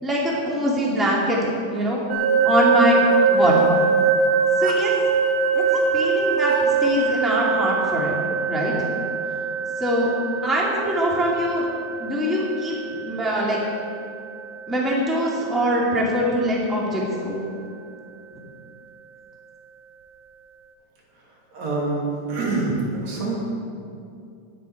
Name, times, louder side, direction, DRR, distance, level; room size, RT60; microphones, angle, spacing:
voice 1, 0.0-2.0 2.4-3.0 3.3-3.7 4.6-4.9 5.5-8.7 9.8-10.1 10.4-11.6 12.0-13.6 14.7-17.4, equal, ahead, -4 dB, 1.7 m, -23 dB
sound 1, 2.1-16.9, right 5 dB, 75° right, 2.7 m, -23 dB
voice 2, 21.5-22.0 22.3-23.4, right 3 dB, 55° right, -4 dB, 3.6 m, -25 dB
20.0 x 8.6 x 4.7 m, 2.4 s
omnidirectional pair, 3.8 m